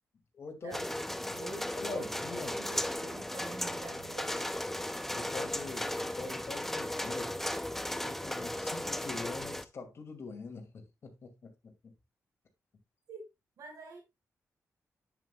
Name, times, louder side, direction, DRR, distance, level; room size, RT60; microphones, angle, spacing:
voice 1, 0.3-0.8 1.8-2.5 5.1-7.4 8.0-11.7, left 4 dB, 50° left, 2.4 m, -43 dB
sound 1, 0.7-9.7, left 1 dB, 5° left, 0.6 m, -36 dB
voice 2, 1.3-2.1 2.5-4.3 13.1-13.2 13.6-14.0, right 3 dB, 85° right, 4.7 m, -46 dB
11.0 x 8.3 x 2.3 m
wide cardioid pair, 135°, 6 cm